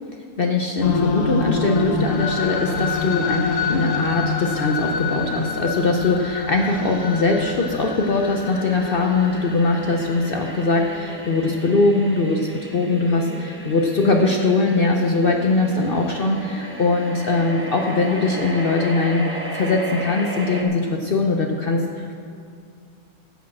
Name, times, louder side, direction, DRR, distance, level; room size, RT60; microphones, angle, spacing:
voice 1, 0.4-22.1, left 3 dB, 75° left, 2 dB, 0.5 m, -21 dB
sound 1, 0.8-10.9, left 4 dB, 50° left, 1.2 m, -27 dB
sound 2, 6.6-20.6, right 1 dB, 10° right, 0.5 m, -35 dB
9.9 x 7.2 x 7.5 m, 2.3 s
omnidirectional pair, 1.9 m